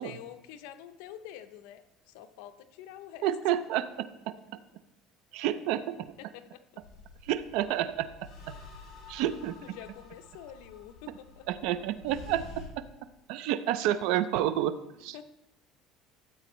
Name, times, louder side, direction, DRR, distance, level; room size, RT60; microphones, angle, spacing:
voice 1, 0.0-3.3 6.2-6.6 9.1-9.2 9.6-11.5 14.9-15.2, left 11 dB, 85° left, 9 dB, 0.6 m, -47 dB
voice 2, 3.2-4.3 5.3-6.1 7.2-8.6 9.1-9.6 11.5-12.4 12.8-12.9 13.3-15.2, right 12 dB, 70° right, 13 dB, 0.5 m, -30 dB
sound 1, 6.8-12.7, left 3 dB, 45° left, 3.3 m, -49 dB
13.5 x 7.8 x 3.1 m, 0.86 s
cardioid pair, 145°, 0 cm